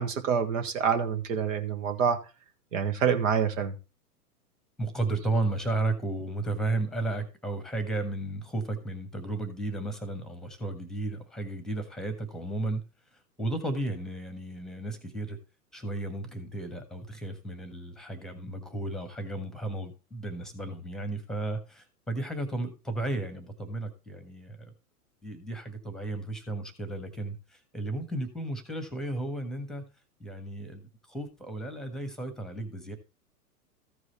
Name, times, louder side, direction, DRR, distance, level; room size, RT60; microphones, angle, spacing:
voice 1, 0.0-2.2 2.7-3.8, right 7 dB, 55° right, 1.7 m, -27 dB
voice 2, 4.8-12.8 13.1-15.4 15.7-24.7 25.2-29.9 30.2-33.0, right 2 dB, ahead, 1.5 m, -34 dB
14.0 x 4.9 x 4.2 m
figure-of-eight pair, 105°, 47 cm